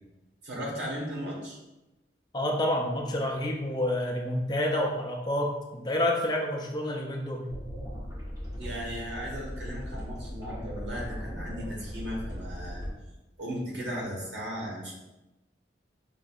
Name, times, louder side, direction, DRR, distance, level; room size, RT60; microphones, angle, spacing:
voice 1, 0.4-1.6 8.6-12.9 13.4-14.9, equal, 85° right, -4 dB, 1.2 m, -36 dB
voice 2, 2.3-7.5, left 1 dB, 25° left, 0 dB, 0.4 m, -28 dB
sound 1, 7.5-12.9, equal, 20° right, 0.9 m, -38 dB
5.0 x 2.7 x 2.4 m, 1.0 s
head